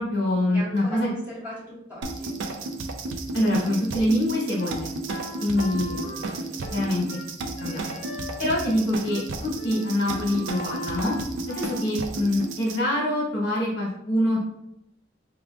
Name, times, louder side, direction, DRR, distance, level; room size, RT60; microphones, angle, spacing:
voice 1, 0.0-1.1 3.3-4.9 5.4-6.0 6.7-7.0 7.6-7.9 8.4-11.1 11.5-14.4, left 1 dB, 65° left, -4 dB, 1.1 m, -25 dB
voice 2, 0.5-2.3 5.5-6.8, equal, 10° right, -8 dB, 1.1 m, -40 dB
sound 1, 2.0-12.8, right 3 dB, 85° right, 0.4 m, -33 dB
Wind instrument woodwind instrument, 4.6-8.8 9.1-9.3 9.6-11.9, left 1 dB, 85° left, 0.5 m, -39 dB
5.0 x 2.3 x 2.3 m, 0.79 s
head